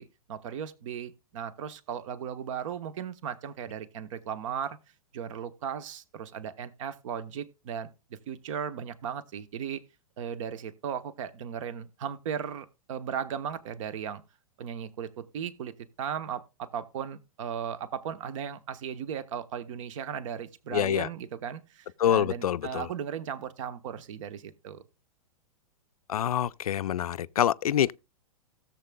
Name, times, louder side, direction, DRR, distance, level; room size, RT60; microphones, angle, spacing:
voice 1, 0.0-4.8 5.1-7.9 8.3-9.8 10.2-14.2 14.6-24.8, right 8 dB, 60° right, 1.0 m, -36 dB
voice 2, 20.7-21.1 22.0-22.9 26.1-27.9, left 10 dB, 80° left, 0.4 m, -26 dB
16.5 x 7.3 x 2.2 m
hypercardioid pair, 110°, 19 cm